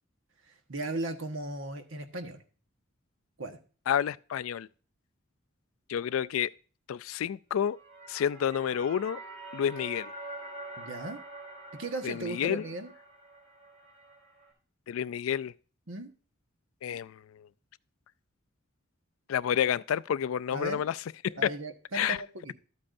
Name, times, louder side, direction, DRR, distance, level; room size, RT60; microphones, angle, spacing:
voice 1, 0.5-2.4 3.4-3.6 10.8-11.2 11.8-12.9 15.9-16.1 20.5-20.8 21.4-22.5, right 2 dB, 70° right, 1.3 m, -37 dB
voice 2, 3.9-4.7 5.9-6.5 6.9-7.8 8.1-9.2 9.5-10.1 12.0-12.6 14.9-15.5 16.8-17.2 19.3-21.0 21.2-21.4 21.9-22.2, left 9 dB, 75° left, 0.3 m, -29 dB
sound 1, 7.6-14.5, right 2 dB, 50° right, 3.6 m, -46 dB
13.0 x 8.7 x 2.6 m
head